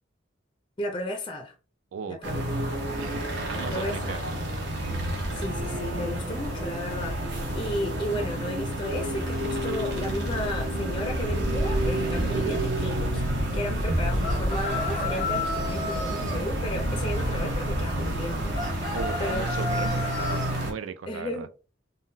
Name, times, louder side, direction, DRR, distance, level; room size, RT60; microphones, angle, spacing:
voice 1, 0.8-1.5 2.1-2.8 3.5-4.4 5.3-19.8 21.1-21.5, left 1 dB, 25° left, 0.4 m, -34 dB
voice 2, 1.9-2.6 3.0-4.2 18.9-21.5, right 6 dB, 85° right, 0.4 m, -37 dB
sound 1, 2.2-20.7, right 1 dB, 60° right, 0.8 m, -29 dB
sound 2, 14.2-16.4 18.5-20.5, left 3 dB, 40° right, 1.2 m, -32 dB
3.7 x 2.1 x 2.6 m
head